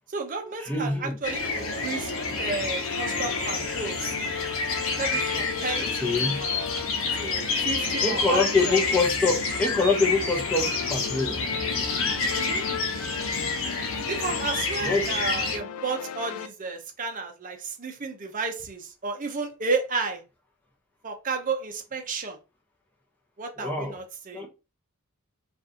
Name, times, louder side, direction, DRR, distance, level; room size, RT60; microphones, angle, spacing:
voice 1, 0.1-2.1 2.4-4.2 5.0-6.7 7.1-8.8 12.3-12.6 14.1-20.2 21.0-22.4 23.4-24.5, right 4 dB, 35° right, 0.8 m, -32 dB
voice 2, 0.6-1.2 5.8-6.4 8.0-11.4 14.8-15.1 23.6-24.0 24.3-24.5, left 3 dB, 10° left, 1.0 m, -25 dB
sound 1, 1.2-15.6, left 3 dB, 65° left, 0.9 m, -29 dB
sound 2, 1.7-16.5, left 7 dB, 90° left, 0.4 m, -37 dB
4.6 x 2.6 x 2.8 m
head